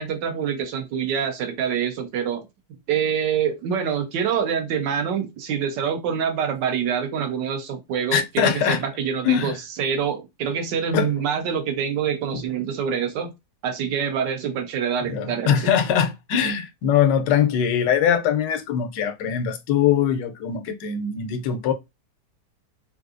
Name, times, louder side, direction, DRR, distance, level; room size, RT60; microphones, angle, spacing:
voice 1, 0.0-2.4 2.9-13.3 13.6-15.7, right 7 dB, 85° right, 1.4 m, -26 dB
voice 2, 8.1-8.8 9.2-9.6 10.9-11.1 12.3-12.4 15.1-21.7, left 8 dB, 85° left, 1.2 m, -22 dB
3.7 x 2.6 x 2.4 m
omnidirectional pair, 1.9 m